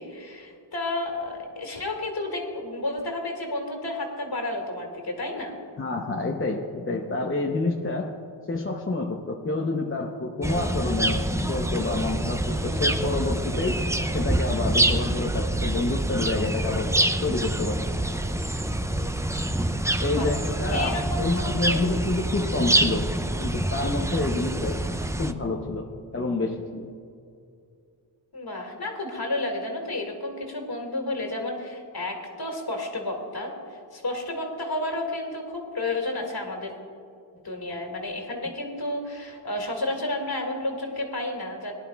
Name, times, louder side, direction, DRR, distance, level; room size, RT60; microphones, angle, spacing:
voice 1, 0.0-5.6 20.1-20.3 20.7-21.9 28.3-36.7 37.4-41.7, left 2 dB, 50° left, 1 dB, 2.0 m, -31 dB
voice 2, 5.8-8.1 8.5-13.8 14.1-16.9 17.2-17.8 20.0-24.8 25.2-25.9 26.1-26.9, left 2 dB, 25° left, 1 dB, 0.8 m, -28 dB
sound 1, 10.4-25.3, right 1 dB, 5° right, 0.4 m, -26 dB
18.5 x 11.0 x 2.3 m, 2.4 s
wide cardioid pair, 75°, 48 cm